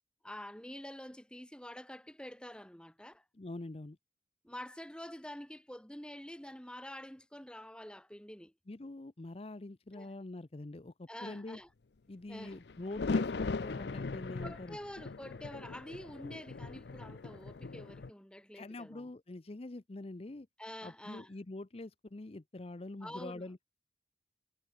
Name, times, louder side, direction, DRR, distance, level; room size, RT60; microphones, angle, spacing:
voice 1, 0.2-3.2 4.4-8.5 9.9-10.1 11.1-11.7 12.3-12.6 14.4-19.1 20.6-21.3 23.0-23.5, left 1 dB, 5° left, 1.9 m, -47 dB
voice 2, 3.3-4.0 8.7-11.6 12.1-14.8 18.5-20.5 20.8-23.6, left 2 dB, 35° left, 0.6 m, -45 dB
sound 1, 12.5-18.1, left 3 dB, 70° left, 0.6 m, -39 dB
head